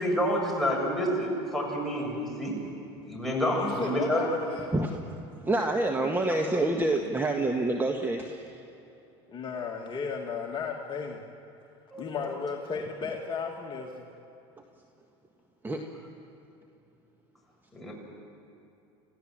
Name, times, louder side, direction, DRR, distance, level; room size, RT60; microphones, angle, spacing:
voice 1, 0.0-2.6 3.0-4.2 11.9-12.3 17.7-17.9, equal, ahead, -3 dB, 7.8 m, -28 dB
voice 2, 3.6-4.7 9.3-11.2 12.0-14.1, left 5 dB, 35° left, 0 dB, 2.1 m, -34 dB
voice 3, 5.3-8.6 15.6-15.8, right 2 dB, 15° right, 3 dB, 1.6 m, -27 dB
27.0 x 16.0 x 7.7 m, 2.8 s
supercardioid pair, 90°, 14 cm